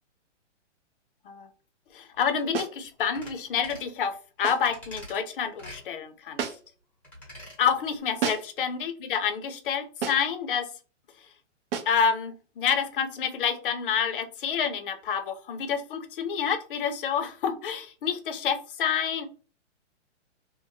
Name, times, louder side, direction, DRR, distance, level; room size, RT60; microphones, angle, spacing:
voice 1, 1.9-6.4 7.6-10.7 11.9-19.3, left 7 dB, 50° left, 10 dB, 0.6 m, -28 dB
sound 1, 2.5-2.8 4.4-4.7 6.4-6.8 8.2-8.6 10.0-10.4 11.7-12.0, right 7 dB, 50° right, 0.6 m, -32 dB
sound 2, 3.1-3.4 3.6-3.9 4.7-5.2 5.6-5.8 7.0-7.6 7.9-8.0, equal, 5° left, 0.9 m, -44 dB
3.0 x 2.1 x 2.7 m, 0.36 s
hypercardioid pair, 155°, 36 cm